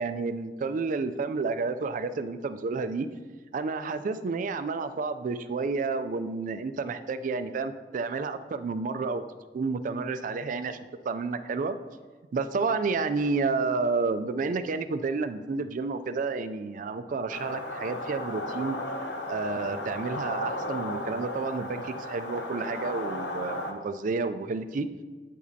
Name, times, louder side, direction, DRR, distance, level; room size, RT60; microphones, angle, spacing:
voice 1, 0.0-3.1 3.5-9.2 9.5-10.8 11.0-11.8 12.3-18.8 19.3-24.9, right 4 dB, 50° right, 11 dB, 0.3 m, -30 dB
sound 1, 17.3-23.7, left 1 dB, 85° left, 0.8 m, -35 dB
8.8 x 5.0 x 2.7 m, 1.4 s
head